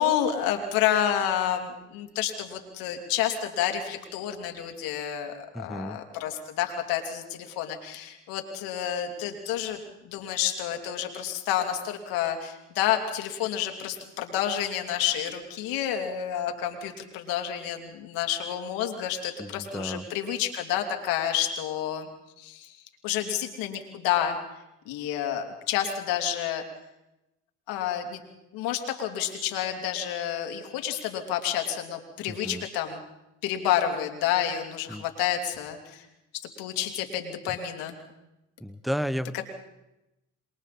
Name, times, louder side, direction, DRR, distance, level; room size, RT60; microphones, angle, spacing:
voice 1, 0.0-22.1 22.4-22.8 23.0-24.4 24.9-26.6 27.7-28.2 28.5-33.0 33.4-36.0 36.6-38.0 39.3-39.4, left 10 dB, 80° left, 4 dB, 3.0 m, -29 dB
voice 2, 5.5-6.0 19.4-20.1 32.3-32.6 34.9-35.0 38.6-39.4, equal, ahead, 15 dB, 0.9 m, -33 dB
28.0 x 22.0 x 4.3 m, 0.92 s
supercardioid pair, 90°, 34 cm